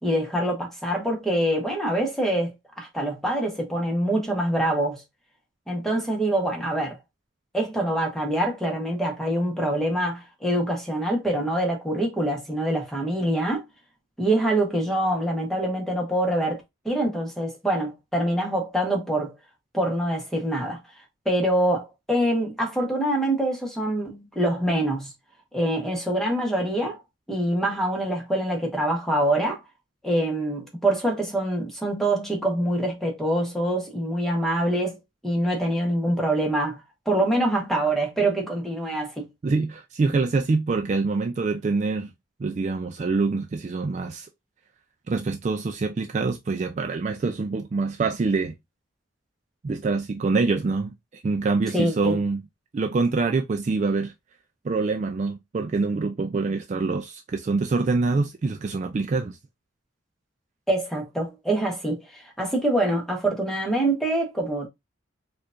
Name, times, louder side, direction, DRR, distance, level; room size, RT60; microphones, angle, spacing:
voice 1, 0.0-2.5 2.8-5.0 5.7-7.0 7.5-13.6 14.2-19.3 19.7-20.8 21.2-25.1 25.5-27.0 27.3-29.6 30.0-35.0 35.2-36.8 37.1-39.3 51.7-52.2 60.7-64.7, right 1 dB, ahead, 1.0 m, -25 dB
voice 2, 39.4-42.1 42.4-44.3 45.1-48.5 49.6-52.4 52.7-54.1 54.6-59.4, right 3 dB, 35° right, 0.3 m, -25 dB
4.5 x 2.4 x 2.5 m
head